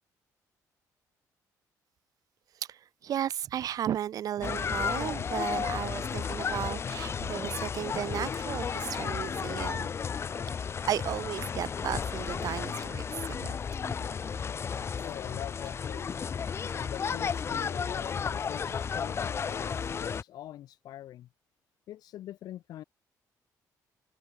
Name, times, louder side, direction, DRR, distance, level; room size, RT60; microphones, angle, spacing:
voice 1, 2.7-9.9 10.9-13.6 13.9-14.1, right 10 dB, 60° right, 2.7 m, -34 dB
sound 1, 4.4-20.2, left 6 dB, 40° left, 1.8 m, -33 dB
voice 2, 15.0-16.3 16.7-21.3 21.9-22.8, left 13 dB, 75° left, 4.6 m, -44 dB
cardioid pair, 115°, 7 cm